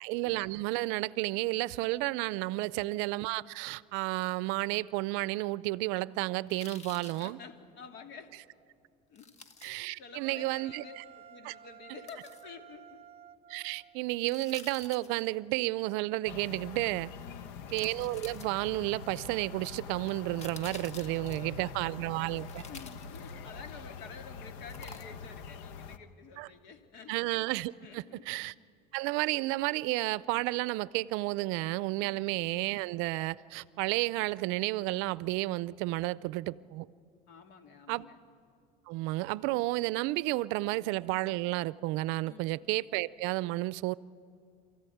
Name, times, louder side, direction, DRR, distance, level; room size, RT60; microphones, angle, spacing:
voice 1, 0.0-7.4 9.6-11.0 11.4-11.5 13.5-17.1 17.7-22.6 26.4-26.5 27.1-28.5 28.9-36.9 37.9-38.1 38.9-44.0, right 20 dB, 75° right, 0.5 m, -32 dB
sound 1, 6.5-7.3 9.2-9.8 12.1-12.4 14.2-15.3 17.0-17.1 17.7-18.9 20.0-21.6 22.4-23.6 24.7-25.4 25.7-25.8, left 4 dB, 35° left, 1.6 m, -50 dB
voice 2, 7.2-8.3 9.1-9.3 9.7-13.0 14.2-14.3 17.1-17.7 20.9-22.0 22.7-27.3 27.8-28.3 32.0-32.3 37.3-38.2 42.2-42.5, left 5 dB, 60° left, 2.4 m, -50 dB
sound 2, 10.2-14.3, right 9 dB, 30° right, 0.6 m, -53 dB
sound 3, 16.3-26.0, left 6 dB, 80° left, 1.1 m, -45 dB
27.0 x 14.5 x 9.3 m
cardioid pair, 125°, 20 cm